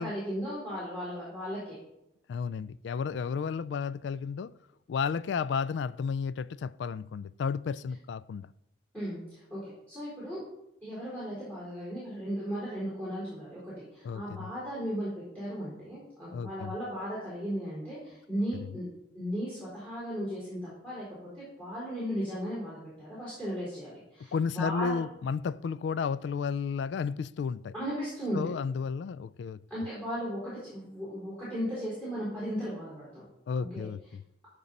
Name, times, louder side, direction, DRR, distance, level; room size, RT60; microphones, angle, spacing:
voice 1, 0.0-1.8 8.9-10.4 10.8-18.8 19.1-25.0 27.7-28.5 29.7-33.2 33.6-33.8, equal, 10° left, 4.1 m, -36 dB
voice 2, 2.3-4.5 4.9-8.5 14.0-14.5 16.3-16.8 24.3-27.7 28.3-29.6 33.5-34.2, left 6 dB, 70° left, 0.3 m, -32 dB
14.5 x 5.3 x 4.1 m
head